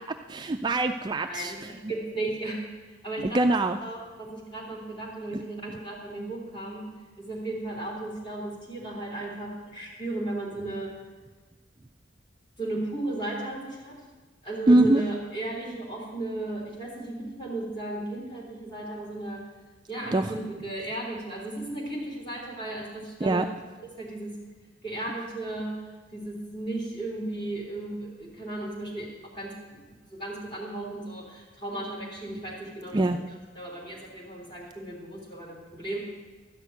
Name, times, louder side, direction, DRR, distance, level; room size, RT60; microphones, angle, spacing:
voice 1, 0.3-1.5 3.3-3.8 5.3-5.4 14.7-15.0 20.1-20.3 23.2-23.5 32.9-33.2, right 2 dB, 20° right, 7 dB, 0.3 m, -22 dB
voice 2, 1.2-2.6 3.0-3.4 3.8-6.8 7.2-10.9 12.6-14.0 14.4-19.4 19.9-23.4 24.0-24.3 24.8-25.8 26.1-29.1 29.3-29.8 30.1-33.0 33.6-36.0, right 2 dB, 25° left, -3 dB, 3.5 m, -35 dB
13.0 x 6.0 x 9.2 m, 1.4 s
head